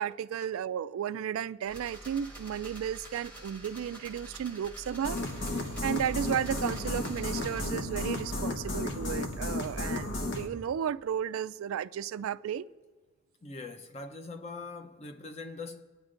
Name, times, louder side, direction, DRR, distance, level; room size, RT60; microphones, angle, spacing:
voice 1, 0.0-5.2 5.5-12.6, right 9 dB, 80° right, 0.3 m, -34 dB
sound 1, 1.7-7.7, right 1 dB, 10° left, 1.2 m, -47 dB
sound 2, 5.0-10.5, left 2 dB, 55° left, 1.1 m, -33 dB
voice 2, 13.4-15.8, left 3 dB, 30° left, 0.6 m, -42 dB
20.5 x 9.6 x 2.5 m
head